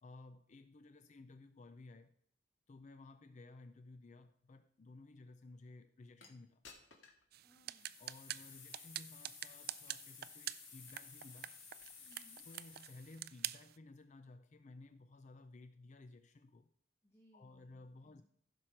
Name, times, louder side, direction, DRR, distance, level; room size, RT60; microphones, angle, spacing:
voice 1, 0.0-2.1 2.7-6.6 8.0-11.5 12.5-16.7 17.3-18.2, left 2 dB, 40° left, 0.4 m, -56 dB
sound 1, 6.2-6.3 6.6-7.2 7.7-13.3, left 6 dB, 80° left, 1.9 m, -56 dB
sound 2, 7.3-13.8, right 13 dB, 50° right, 0.4 m, -47 dB
voice 2, 7.4-7.9 12.0-12.5 17.0-18.2, left 1 dB, 15° left, 1.5 m, -68 dB
15.0 x 6.2 x 4.4 m
head